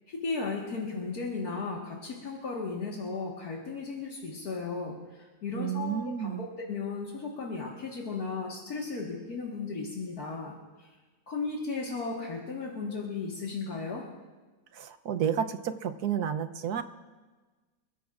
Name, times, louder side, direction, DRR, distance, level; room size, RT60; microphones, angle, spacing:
voice 1, 0.1-10.9 11.3-14.1, left 4 dB, 70° left, -3 dB, 2.2 m, -35 dB
voice 2, 5.5-6.5 14.7-16.8, right 8 dB, 75° right, 10 dB, 1.4 m, -31 dB
28.0 x 16.0 x 2.5 m, 1.3 s
omnidirectional pair, 1.7 m